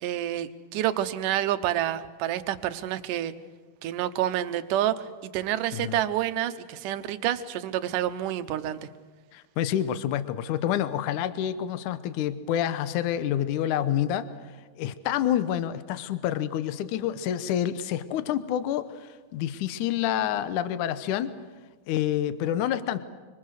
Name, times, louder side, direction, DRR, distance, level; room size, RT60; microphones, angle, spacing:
voice 1, 0.0-3.3 3.8-8.9, right 12 dB, 70° right, 11 dB, 2.3 m, -28 dB
voice 2, 9.3-14.3 14.8-21.3 21.9-23.0, left 11 dB, 70° left, 12 dB, 2.2 m, -28 dB
25.5 x 25.0 x 6.5 m, 1.4 s
omnidirectional pair, 4.1 m